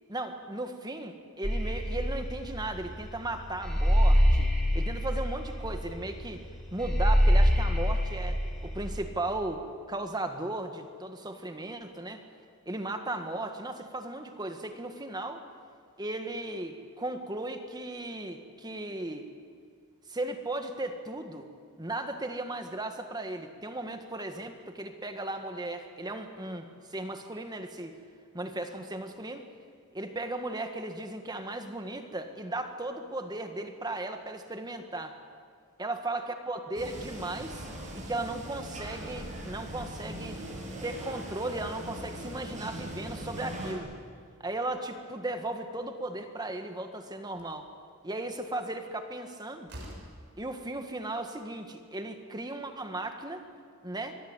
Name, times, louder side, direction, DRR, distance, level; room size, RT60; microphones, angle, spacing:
voice 1, 0.1-6.4 6.7-9.6 9.9-12.2 12.7-15.4 16.0-19.2 20.1-21.5 21.8-27.9 28.3-29.5 29.9-35.1 35.8-37.7 37.9-40.4 40.8-43.9 44.4-47.7 48.0-49.7 50.4-53.4 53.8-54.1, right 2 dB, 20° right, 6 dB, 1.7 m, -36 dB
sound 1, 1.4-9.0, equal, ahead, 5.1 m, -25 dB
sound 2, 36.7-43.7, right 1 dB, 35° right, 7.2 m, -40 dB
Slam, 47.3-47.6 49.2-49.3 49.7-50.2, equal, 50° right, 6.7 m, -44 dB
25.0 x 22.0 x 8.9 m, 2.2 s
head